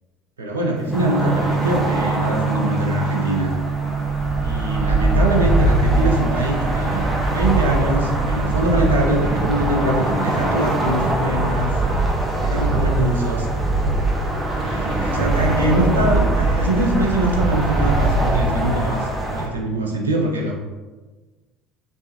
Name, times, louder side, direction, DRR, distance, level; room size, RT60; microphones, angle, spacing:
voice 1, 0.4-3.6 4.4-11.8 12.3-13.5 14.6-20.5, right 1 dB, 80° right, 0 dB, 0.5 m, -23 dB
Gong, 0.8-19.4, right 6 dB, 35° right, 0.9 m, -29 dB
sound 1, 0.9-19.5, right 1 dB, 10° right, 1.0 m, -22 dB
3.2 x 3.2 x 2.8 m, 1.3 s
figure-of-eight pair, 65°, 0 cm